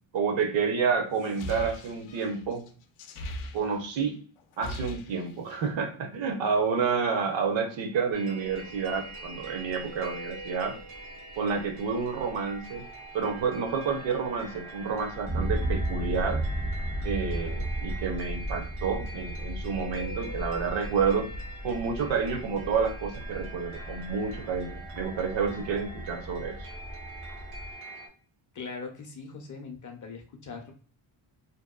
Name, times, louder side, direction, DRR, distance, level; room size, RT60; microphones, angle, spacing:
voice 1, 0.1-2.6 3.5-4.2 4.6-10.8 11.4-12.8 13.1-16.4 17.0-21.3 21.6-26.7, right 5 dB, 65° right, 4 dB, 0.7 m, -29 dB
sound 1, 1.1-4.1 4.4-5.7, equal, 85° left, 0.6 m, -40 dB
sound 2, 8.1-28.1, right 2 dB, 80° right, 1.2 m, -44 dB
sound 3, 8.5-27.7, right 1 dB, 15° right, 0.4 m, -35 dB
voice 2, 28.5-30.7, left 4 dB, 40° left, 4 dB, 0.5 m, -41 dB
2.8 x 2.2 x 2.2 m, 0.41 s
cardioid pair, 130°, 49 cm